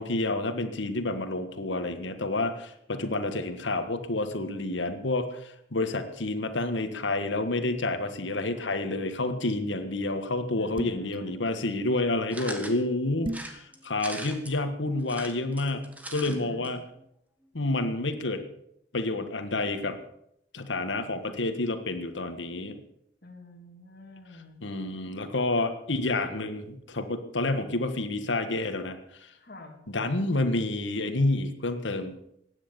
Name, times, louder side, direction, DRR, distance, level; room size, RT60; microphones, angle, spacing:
voice 1, 0.0-15.8 16.1-16.8 17.5-18.4 18.9-20.0 20.5-22.8 24.6-29.3 29.9-32.1, left 2 dB, 85° left, 8 dB, 1.6 m, -29 dB
voice 2, 10.6-11.3 16.2-16.8 23.2-24.7 29.4-29.8, left 2 dB, 50° left, 0 dB, 2.7 m, -48 dB
sound 1, 10.8-11.2 13.2-13.6, right 2 dB, 25° right, 0.6 m, -34 dB
sound 2, 12.3-12.8 13.3-14.6 15.0-16.4 16.6-16.7 17.0-17.1, right 1 dB, 10° right, 1.5 m, -40 dB
16.0 x 9.9 x 6.9 m, 0.76 s
head